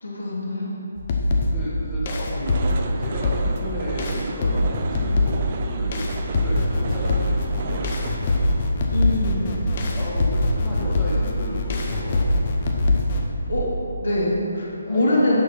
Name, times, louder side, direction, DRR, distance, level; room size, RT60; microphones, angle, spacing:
voice 1, 0.0-0.8 8.9-9.4 13.5-13.6 14.0-15.4, left 1 dB, 65° left, -5 dB, 2.2 m, -23 dB
sound 1, 1.0-13.3, left 1 dB, 35° left, 0.8 m, -23 dB
voice 2, 1.3-7.8 9.3-9.6 9.9-12.3 14.8-15.4, left 1 dB, 10° left, -10 dB, 1.3 m, -33 dB
sound 2, 2.4-8.7, right 4 dB, 35° right, 0.5 m, -34 dB
8.5 x 6.3 x 4.5 m, 2.6 s
figure-of-eight pair, 145°, 0 cm